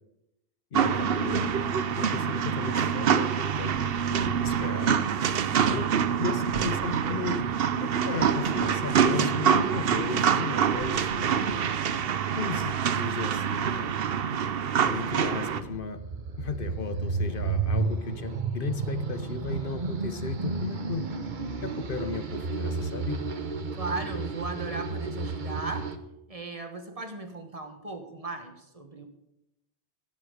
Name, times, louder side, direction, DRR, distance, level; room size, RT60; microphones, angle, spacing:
voice 1, 0.7-1.5 1.9-3.8 4.1-5.0 5.7-5.9 6.2-7.5 7.8-11.8 12.3-14.0 14.8-16.0 16.4-21.1 21.6-23.2, left 5 dB, 60° left, 10 dB, 1.0 m, -35 dB
sound 1, 0.7-15.6, right 7 dB, 70° right, 0.9 m, -26 dB
sound 2, 14.9-26.0, right 4 dB, 50° right, 1.0 m, -32 dB
voice 2, 23.7-25.9 26.3-29.1, right 3 dB, 35° right, 5 dB, 1.5 m, -37 dB
17.5 x 7.7 x 5.0 m, 0.86 s
omnidirectional pair, 1.0 m